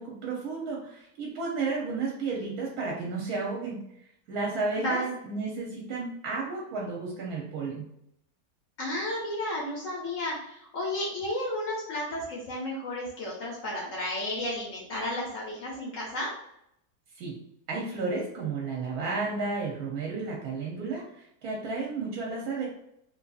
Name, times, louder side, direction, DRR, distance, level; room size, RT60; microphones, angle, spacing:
voice 1, 0.0-3.8 4.3-7.9 17.2-17.4 17.7-22.6, right 3 dB, 70° right, -2 dB, 1.0 m, -32 dB
voice 2, 4.8-5.2 8.8-16.3, left 1 dB, 65° left, -3 dB, 0.9 m, -32 dB
2.7 x 2.6 x 2.3 m, 0.77 s
omnidirectional pair, 1.8 m